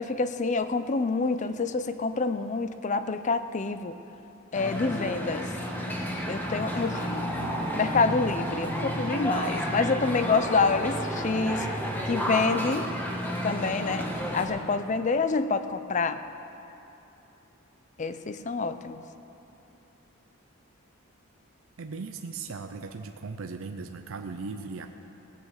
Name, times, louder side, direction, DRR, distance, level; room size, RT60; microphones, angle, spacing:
voice 1, 0.0-4.0 4.5-5.5 6.3-7.2 7.8-11.7 12.0-12.9 13.4-16.2 18.0-19.0, left 4 dB, 35° left, 11 dB, 0.5 m, -27 dB
sound 1, 4.5-14.5, equal, 10° left, 1.3 m, -31 dB
voice 2, 21.8-24.9, right 4 dB, 70° right, 6 dB, 0.5 m, -38 dB
17.0 x 8.8 x 6.5 m, 2.9 s
head